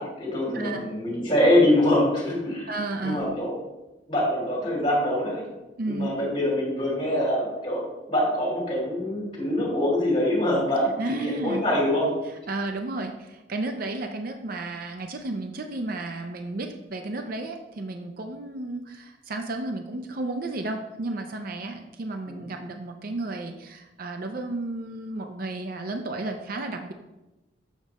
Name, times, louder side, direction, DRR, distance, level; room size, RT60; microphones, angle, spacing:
voice 1, 0.0-2.7 3.0-3.5 4.1-5.4 5.9-12.1 22.3-22.4, left 1 dB, 25° left, -4 dB, 2.7 m, -24 dB
voice 2, 2.7-3.2 5.8-6.1 11.0-11.6 12.2-26.9, right 2 dB, 50° right, 5 dB, 0.5 m, -33 dB
7.3 x 5.0 x 4.1 m, 1.0 s
head